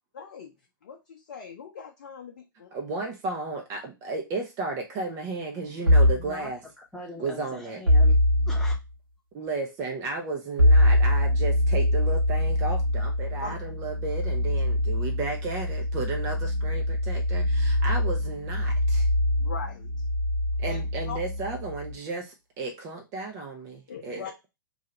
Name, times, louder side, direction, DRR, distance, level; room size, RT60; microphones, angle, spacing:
voice 1, 0.1-2.7 13.4-13.6 19.4-20.1 20.7-21.2 23.9-24.3, left 5 dB, 50° left, 0 dB, 0.6 m, -40 dB
voice 2, 2.7-6.6 7.2-7.8 9.3-19.1 20.6-24.2, right 3 dB, 30° right, 2 dB, 0.5 m, -33 dB
sound 1, 5.9-6.3 7.9-8.8 10.6-21.9, left 1 dB, 90° right, 0.9 m, -23 dB
voice 3, 6.2-6.5 6.8-8.2 8.5-8.8, left 2 dB, 5° left, -3 dB, 0.9 m, -41 dB
2.7 x 2.4 x 4.2 m, 0.24 s
figure-of-eight pair, 105°, 11 cm